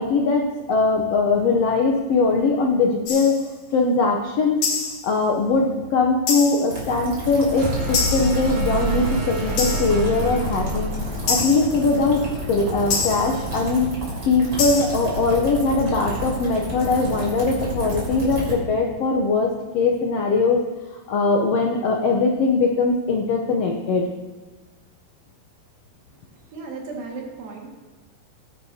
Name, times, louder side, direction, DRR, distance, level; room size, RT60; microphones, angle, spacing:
voice 1, 0.0-3.4 3.7-4.6 5.0-10.9 11.3-12.2 12.5-13.9 14.3-19.5 19.7-20.6 21.1-24.1, left 3 dB, 75° left, 1 dB, 1.4 m, -21 dB
sound 1, 3.1-3.5 4.6-5.1 6.3-6.8 7.9-8.5 9.6-10.1 11.3-11.8 12.9-13.4 14.6-15.1, left 4 dB, 60° left, 2.9 m, -26 dB
sound 2, 6.7-18.5, right 1 dB, 35° right, 3.9 m, -31 dB
sound 3, 7.5-13.3, right 2 dB, 55° right, 3.3 m, -28 dB
voice 2, 26.5-27.7, right 4 dB, 85° right, -1 dB, 3.9 m, -35 dB
19.0 x 9.9 x 2.8 m, 1.3 s
omnidirectional pair, 4.1 m